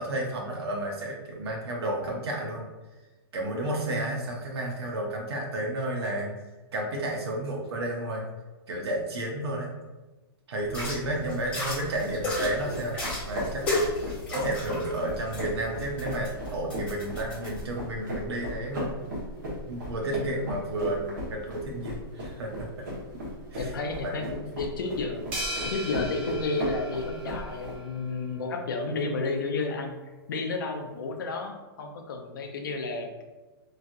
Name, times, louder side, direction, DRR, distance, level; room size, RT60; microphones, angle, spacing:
voice 1, 0.0-2.6 3.3-6.3 6.7-8.2 8.7-9.7 10.5-13.7 14.3-18.9 19.7-22.9 23.5-23.7 24.0-24.1, right 1 dB, 85° right, -1 dB, 0.7 m, -32 dB
voice 2, 3.9-4.2 11.0-11.4 20.2-20.5 23.5-25.2 25.6-29.9 30.3-33.1, left 3 dB, 55° left, 3 dB, 0.5 m, -32 dB
sound 1, 10.6-17.6, left 1 dB, 10° left, 1.0 m, -34 dB
sound 2, 12.1-27.7, equal, 50° right, 1.2 m, -37 dB
sound 3, 25.3-27.8, right 1 dB, 25° right, 0.6 m, -37 dB
3.0 x 2.7 x 2.5 m, 1.2 s
hypercardioid pair, 180°, 13 cm